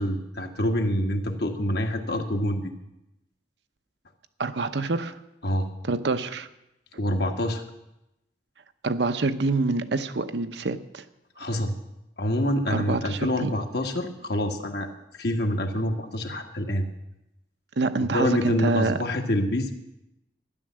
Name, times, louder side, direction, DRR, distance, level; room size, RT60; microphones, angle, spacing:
voice 1, 0.0-2.7 5.4-5.7 7.0-7.6 11.4-11.7 12.2-14.9 15.2-16.8 18.1-19.8, left 1 dB, 65° left, 4 dB, 1.6 m, -26 dB
voice 2, 4.4-5.2 5.8-6.5 8.8-11.0 12.7-13.5 17.8-19.0, right 3 dB, 70° right, 10 dB, 0.8 m, -26 dB
12.5 x 10.5 x 7.5 m, 0.89 s
head